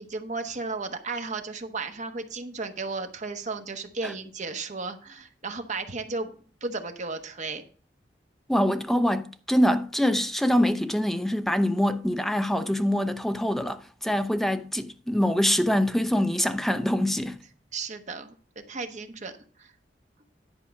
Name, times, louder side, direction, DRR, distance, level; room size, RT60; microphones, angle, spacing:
voice 1, 0.0-7.6 17.7-19.3 19.6-19.7, right 3 dB, 45° right, 1.1 m, -34 dB
voice 2, 8.5-17.4, equal, ahead, 0.6 m, -24 dB
11.0 x 4.8 x 5.9 m
head